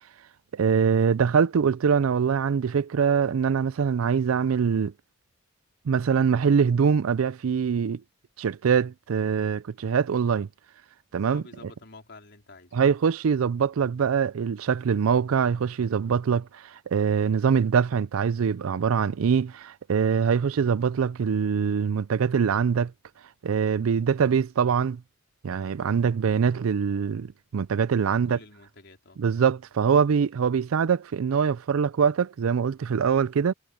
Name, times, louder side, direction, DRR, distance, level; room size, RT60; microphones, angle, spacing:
voice 1, 0.5-4.9 5.9-8.0 8.4-10.5 11.1-11.4 12.7-22.9 23.4-25.0 25.4-28.4 29.2-33.5, right 6 dB, 80° right, 0.4 m, -23 dB
voice 2, 11.3-12.8 28.1-29.2, left 3 dB, 55° left, 4.5 m, -49 dB
head